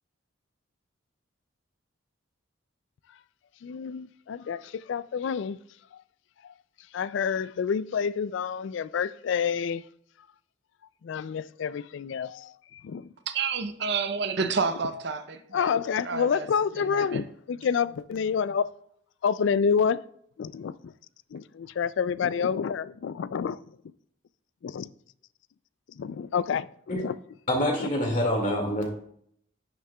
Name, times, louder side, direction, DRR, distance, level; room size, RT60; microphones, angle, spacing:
voice 1, 3.6-5.6 6.9-9.8 11.0-13.1 15.5-18.7 19.2-20.0 20.4-20.7 21.3-23.6 24.6-24.9 26.0-27.1 27.8-27.9, left 6 dB, 60° left, 0.3 m, -28 dB
voice 2, 13.3-15.7 16.0-16.5 16.8-17.3, right 5 dB, 55° right, 0.6 m, -30 dB
voice 3, 27.5-28.8, left 1 dB, 40° left, 2.0 m, -26 dB
10.5 x 6.4 x 2.3 m
head